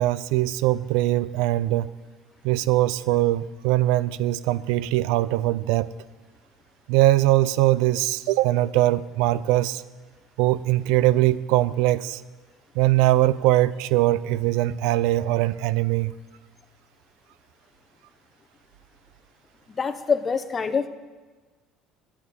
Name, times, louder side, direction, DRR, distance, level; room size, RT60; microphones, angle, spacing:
voice 1, 0.0-1.9 2.4-5.9 6.9-9.8 10.4-12.2 12.8-16.1, right 15 dB, 85° right, 18 dB, 0.5 m, -21 dB
voice 2, 19.8-20.9, left 5 dB, 25° left, 10 dB, 1.0 m, -25 dB
12.5 x 9.1 x 8.5 m, 1.4 s
cardioid pair, 125°, 0 cm